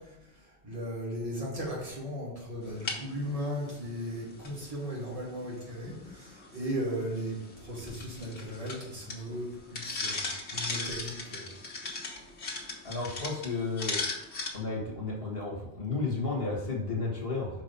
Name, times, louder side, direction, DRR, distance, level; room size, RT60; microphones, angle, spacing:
voice 1, 0.6-11.4, equal, 30° right, -6 dB, 2.4 m, -36 dB
sound 1, 2.6-14.5, left 3 dB, 80° left, 1.6 m, -39 dB
voice 2, 12.8-14.1 14.5-17.5, left 3 dB, 60° left, -1 dB, 1.8 m, -32 dB
5.8 x 4.9 x 5.3 m, 0.93 s
omnidirectional pair, 1.1 m